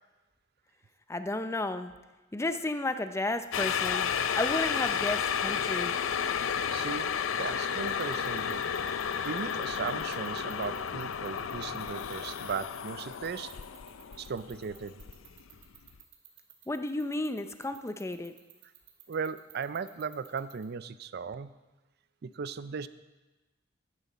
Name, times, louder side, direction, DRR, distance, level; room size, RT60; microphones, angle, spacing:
voice 1, 1.1-1.9 2.3-4.1 4.3-5.9 16.7-18.3, left 2 dB, 15° left, 10 dB, 0.5 m, -32 dB
sound 1, 3.5-15.6 15.9-16.0, left 7 dB, 90° left, 0.5 m, -32 dB
voice 2, 6.7-8.6 9.2-13.5 14.2-15.0 19.1-21.5 22.2-22.9, right 5 dB, 55° right, 14 dB, 0.4 m, -37 dB
sound 2, 7.8-20.6, right 15 dB, 70° right, 1.8 m, -53 dB
12.5 x 9.7 x 4.2 m, 1.1 s
head